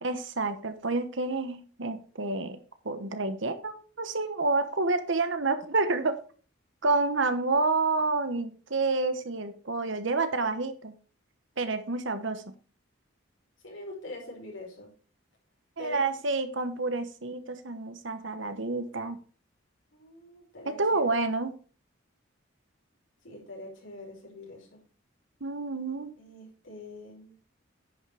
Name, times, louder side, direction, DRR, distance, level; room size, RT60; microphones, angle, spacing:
voice 1, 0.0-2.6 2.8-6.2 6.8-10.9 11.6-12.5 15.8-19.2 20.6-21.5 25.4-26.1, right 3 dB, 60° right, 10 dB, 1.1 m, -29 dB
voice 2, 13.6-14.9 15.8-16.0 19.9-21.1 23.2-24.8 26.2-27.3, left 2 dB, 65° left, -2 dB, 5.3 m, -44 dB
10.0 x 5.9 x 4.9 m, 0.39 s
head